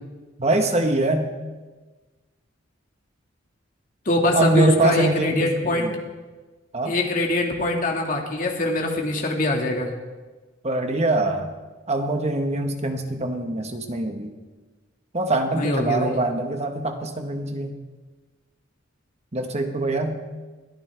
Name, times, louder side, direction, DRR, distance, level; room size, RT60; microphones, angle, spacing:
voice 1, 0.4-1.3 4.3-6.0 6.7-7.0 10.6-11.5 11.9-14.3 15.1-17.7 19.3-20.2, right 2 dB, 35° right, 5 dB, 1.3 m, -23 dB
voice 2, 4.1-5.9 6.9-9.9 15.5-16.2, left 2 dB, 40° left, 1 dB, 2.0 m, -23 dB
22.0 x 13.0 x 3.5 m, 1.3 s
head